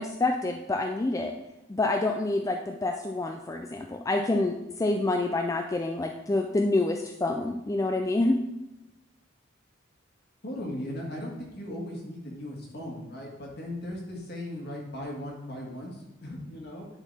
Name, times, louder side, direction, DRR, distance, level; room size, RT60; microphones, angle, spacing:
voice 1, 0.0-1.3 1.7-8.4, left 2 dB, 15° left, 3 dB, 0.3 m, -27 dB
voice 2, 10.4-16.9, left 1 dB, 55° left, -1 dB, 1.8 m, -37 dB
9.9 x 4.0 x 4.1 m, 0.95 s
head